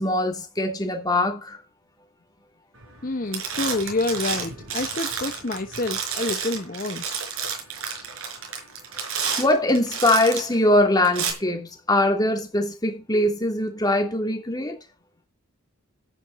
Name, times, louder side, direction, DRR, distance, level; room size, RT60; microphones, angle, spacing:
voice 1, 0.0-1.6 9.4-14.8, left 1 dB, 20° left, 3.0 m, -22 dB
sound 1, 2.8-3.1 3.3-10.5 11.0-11.3, right 6 dB, 85° right, 5.3 m, -30 dB
voice 2, 3.0-7.1, left 2 dB, 40° left, 1.0 m, -28 dB
12.5 x 9.8 x 4.2 m
head